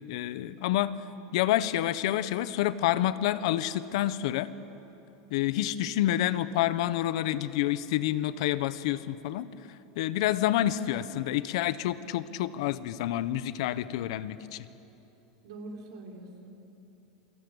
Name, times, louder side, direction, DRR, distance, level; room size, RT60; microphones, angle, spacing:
voice 1, 0.1-0.9 1.3-4.5 5.3-9.5 9.9-14.7, left 13 dB, 65° left, 14 dB, 1.2 m, -28 dB
voice 2, 15.4-16.5, right 2 dB, 85° right, 1 dB, 5.0 m, -43 dB
28.0 x 25.0 x 8.2 m, 3.0 s
supercardioid pair, 155°, 3 cm